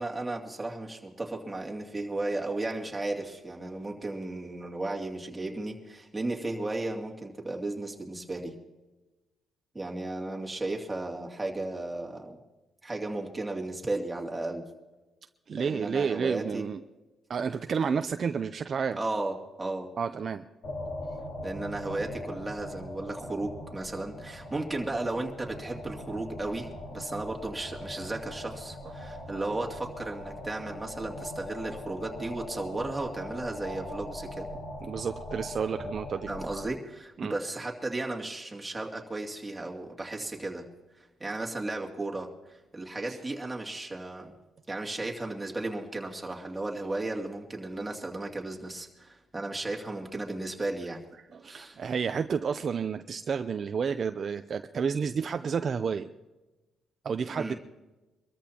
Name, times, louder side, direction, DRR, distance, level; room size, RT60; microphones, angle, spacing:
voice 1, 0.0-8.5 9.7-12.4 12.8-14.6 15.5-16.6 19.0-19.9 21.4-34.5 36.3-40.7 41.2-42.3 42.7-44.3 44.7-51.0 51.4-51.8 57.4-57.6, right 2 dB, 15° right, -1 dB, 2.5 m, -35 dB
voice 2, 15.5-16.8 17.3-19.0 20.0-20.4 34.8-36.3 37.2-37.3 43.1-43.2 51.3-56.1 57.0-57.5, right 6 dB, 50° right, 8 dB, 0.5 m, -30 dB
sound 1, 20.6-36.7, left 1 dB, 70° left, 3.5 m, -41 dB
24.5 x 13.5 x 2.9 m, 1.1 s
cardioid pair, 90°, 0 cm